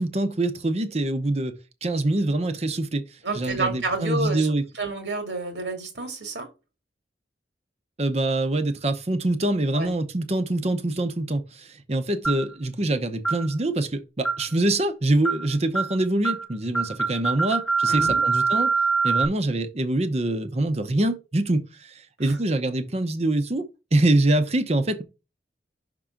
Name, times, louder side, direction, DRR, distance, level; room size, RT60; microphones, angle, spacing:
voice 1, 0.0-1.5 1.8-3.0 3.3-4.6 8.0-18.7 19.0-21.9 22.2-25.0, right 2 dB, 35° right, 0.8 m, -24 dB
voice 2, 3.2-4.5 4.7-6.5 9.7-9.9 17.9-18.2 22.2-22.4, right 2 dB, 80° right, 2.4 m, -29 dB
sound 1, 12.2-12.5 13.2-13.5 14.2-14.5 15.2-15.5 15.7-16.0 16.2-16.5 16.7-19.2, right 4 dB, 10° left, 0.7 m, -24 dB
6.1 x 3.8 x 5.8 m
head